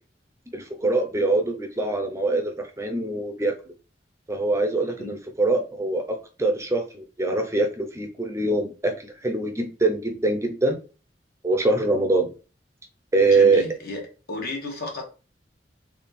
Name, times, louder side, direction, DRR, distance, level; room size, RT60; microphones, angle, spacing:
voice 1, 0.5-3.5 4.3-6.0 6.4-10.8 11.4-12.3 13.1-13.6, right 2 dB, 15° right, 4 dB, 0.5 m, -23 dB
voice 2, 13.3-14.0 14.3-15.0, left 2 dB, 60° left, 1 dB, 1.2 m, -33 dB
3.5 x 2.3 x 4.0 m, 0.33 s
head